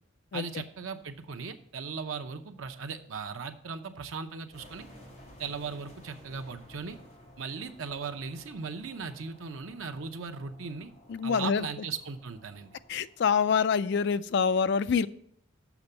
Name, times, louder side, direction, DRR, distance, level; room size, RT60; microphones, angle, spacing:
voice 1, 0.3-4.9 5.4-7.0 7.4-10.9 11.2-12.8, right 5 dB, 80° right, 6 dB, 0.8 m, -38 dB
sound 1, 4.5-13.4, left 1 dB, 40° left, 3.2 m, -54 dB
voice 2, 11.1-11.7 12.9-15.1, left 6 dB, 55° left, 14 dB, 0.4 m, -26 dB
7.1 x 6.0 x 6.6 m, 0.68 s
head